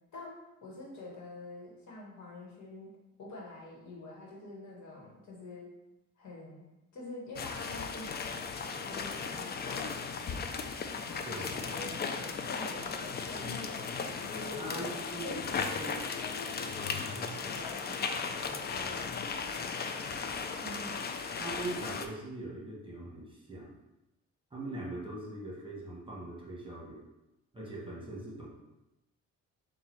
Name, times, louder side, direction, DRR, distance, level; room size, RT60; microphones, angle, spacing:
voice 1, 0.1-2.9 3.2-5.7 6.2-6.6 6.9-10.6 10.9-14.0 14.3-15.9 16.2-20.2 20.5-20.9, left 2 dB, 70° left, -2 dB, 1.3 m, -46 dB
sound 1, 7.4-22.1, left 5 dB, 35° left, 0.4 m, -36 dB
voice 2, 11.2-11.7 14.5-15.4 15.8-16.0 17.1-17.3 21.4-23.8 24.5-27.0 27.5-28.5, right 2 dB, 15° right, -4 dB, 1.2 m, -41 dB
3.8 x 2.4 x 4.4 m, 0.96 s
cardioid pair, 90°, 30 cm